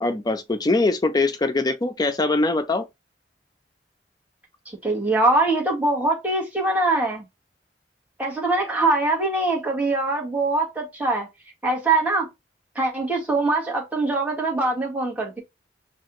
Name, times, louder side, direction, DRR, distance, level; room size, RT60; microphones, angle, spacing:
voice 1, 0.0-2.9, left 2 dB, 20° left, 0.5 m, -22 dB
voice 2, 4.6-7.2 8.2-11.3 11.6-12.3 12.7-15.4, right 2 dB, 10° right, 1.5 m, -23 dB
5.3 x 2.4 x 3.0 m
head